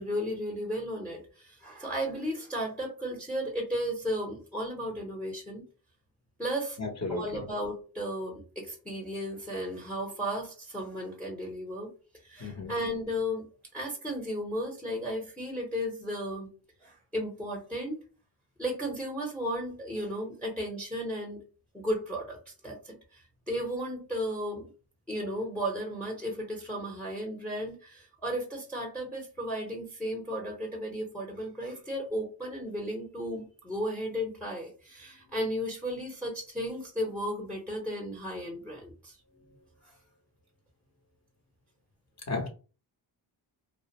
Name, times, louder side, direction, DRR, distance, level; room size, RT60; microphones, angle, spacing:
voice 1, 0.0-5.6 6.4-6.8 7.1-11.9 12.2-13.5 13.7-16.5 16.8-18.0 18.6-21.4 21.7-24.7 25.1-39.2 39.8-39.9, equal, 5° left, 0 dB, 0.8 m, -34 dB
voice 2, 6.8-7.4 12.4-12.7 39.3-39.6 42.2-42.5, left 3 dB, 35° left, 2 dB, 0.8 m, -35 dB
2.3 x 2.1 x 2.9 m, 0.35 s
cardioid pair, 65°, 49 cm